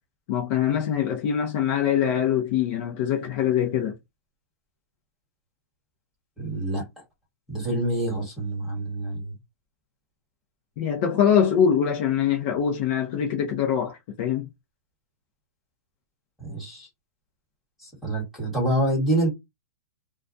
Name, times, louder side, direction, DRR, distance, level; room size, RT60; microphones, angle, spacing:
voice 1, 0.3-4.0 10.8-14.5, left 8 dB, 40° left, 0.6 m, -23 dB
voice 2, 6.4-6.8 7.5-9.3 16.4-16.9 17.8-19.3, right 1 dB, ahead, 1.3 m, -26 dB
2.3 x 2.2 x 2.6 m
hypercardioid pair, 160°, 9 cm